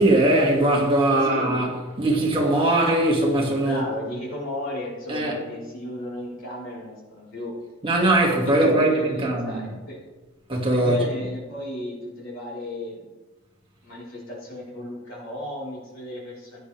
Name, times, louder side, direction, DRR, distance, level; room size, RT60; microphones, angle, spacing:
voice 1, 0.0-1.7 2.0-3.8 5.1-5.3 7.8-9.6 10.5-11.0, right 1 dB, 25° right, 2.2 m, -20 dB
voice 2, 1.1-1.6 3.6-7.5 8.4-10.0 10.7-13.1 13.8-16.6, left 1 dB, 65° left, 4.3 m, -34 dB
16.0 x 10.0 x 3.5 m
head